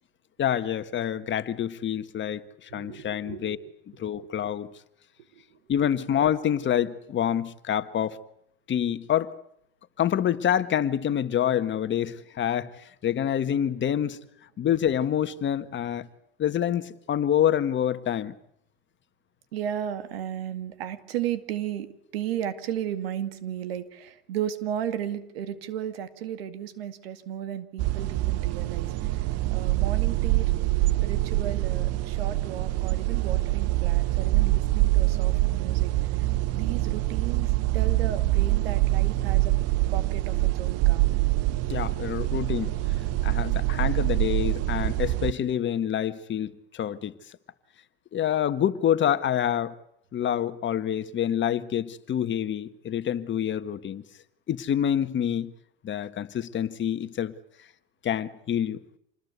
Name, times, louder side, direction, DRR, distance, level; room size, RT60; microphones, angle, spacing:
voice 1, 0.4-3.6 4.0-4.7 5.7-8.2 8.7-9.3 10.0-14.2 14.6-16.1 16.4-18.3 41.7-42.7 43.2-47.1 48.1-49.7 50.1-54.0 54.5-55.5 55.8-57.3 58.0-58.8, left 10 dB, 40° left, 1.6 m, -27 dB
voice 2, 2.7-3.6 5.3-5.4 19.5-29.2 29.5-30.5 31.0-35.9 36.2-36.3 36.5-39.5 39.9-41.2, right 10 dB, 90° right, 2.1 m, -34 dB
sound 1, 27.8-45.3, right 18 dB, 55° right, 1.0 m, -25 dB
27.0 x 20.5 x 8.2 m
supercardioid pair, 90°, 29 cm